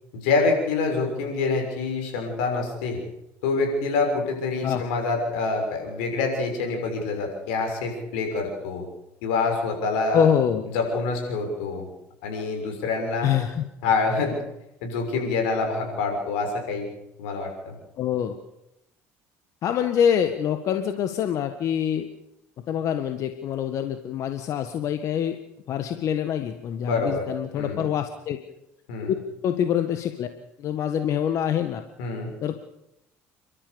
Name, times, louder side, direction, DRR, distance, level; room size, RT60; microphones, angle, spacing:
voice 1, 0.1-3.0 3.4-8.8 9.2-10.3 10.7-11.9 12.2-13.3 13.8-14.4 14.8-16.9 17.2-17.7 26.8-27.2 27.5-27.9 28.9-29.1 32.0-32.3, left 3 dB, 85° left, 3 dB, 6.5 m, -26 dB
voice 2, 10.1-10.6 13.2-13.6 18.0-18.4 19.6-22.1 22.7-25.4 25.7-28.4 29.0-29.1 29.4-30.3 30.6-31.8 32.4-32.6, left 9 dB, 60° left, 8 dB, 1.6 m, -25 dB
29.5 x 13.0 x 7.1 m, 0.85 s
supercardioid pair, 90°, 6 cm